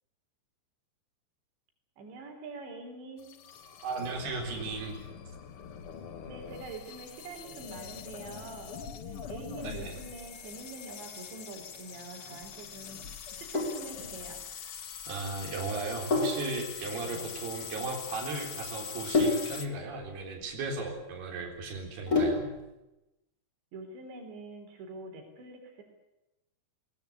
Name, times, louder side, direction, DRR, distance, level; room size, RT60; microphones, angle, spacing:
voice 1, 2.0-3.3 6.3-13.0 13.4-14.4 17.1-17.3 23.7-25.8, right 3 dB, 90° right, 4 dB, 6.1 m, -45 dB
sound 1, 3.2-19.7, left 7 dB, 80° left, 1.2 m, -43 dB
voice 2, 3.8-5.0 9.6-9.9 15.1-22.5, right 3 dB, 65° right, 1 dB, 5.8 m, -36 dB
Sink (filling or washing), 13.3-22.7, left 3 dB, 20° left, 4.9 m, -32 dB
22.0 x 20.0 x 8.6 m, 0.94 s
omnidirectional pair, 5.0 m